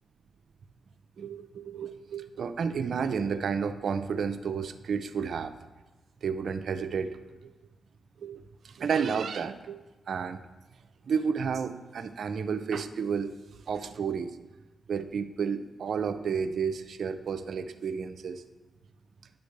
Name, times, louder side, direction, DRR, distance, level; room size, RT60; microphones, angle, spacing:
voice 1, 1.2-5.5 6.2-7.5 8.2-9.8 10.1-10.4 11.0-13.3 13.7-14.4 14.9-18.4, right 6 dB, 70° right, 10 dB, 0.5 m, -31 dB
10.5 x 3.4 x 6.5 m, 1.2 s
cardioid pair, 60°, 0 cm